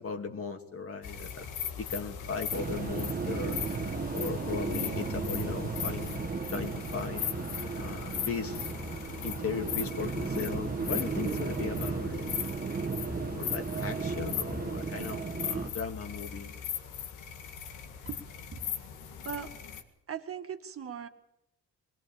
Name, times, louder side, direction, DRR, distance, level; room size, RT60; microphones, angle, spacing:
voice 1, 0.0-1.5 1.8-3.6 4.1-7.3 7.8-8.7 9.2-12.3 13.3-16.5, left 5 dB, 50° left, 5 dB, 2.5 m, -37 dB
sound 1, 1.0-19.8, left 8 dB, 90° left, 2.0 m, -39 dB
sound 2, 2.5-15.7, right 5 dB, 30° right, 1.5 m, -35 dB
voice 2, 20.1-21.1, right 8 dB, 50° right, 5 dB, 1.9 m, -39 dB
22.0 x 18.0 x 7.3 m, 0.84 s
cardioid pair, 90°, 30 cm